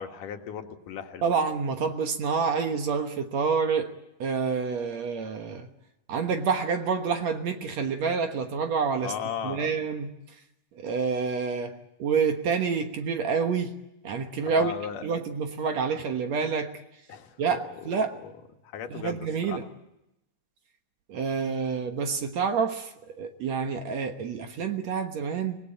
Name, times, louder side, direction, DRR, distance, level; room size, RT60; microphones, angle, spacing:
voice 1, 0.0-1.3 9.0-9.7 14.4-15.0 17.1-17.9 18.2-18.3 18.6-19.6, left 8 dB, 70° left, 5 dB, 3.1 m, -37 dB
voice 2, 1.2-3.9 4.2-5.7 6.1-9.1 9.4-10.1 10.8-13.8 14.0-14.7 15.0-16.8 17.4-18.2 18.9-19.7 21.1-25.6, right 5 dB, 60° right, 6 dB, 2.3 m, -28 dB
25.0 x 19.5 x 9.0 m, 0.89 s
omnidirectional pair, 4.0 m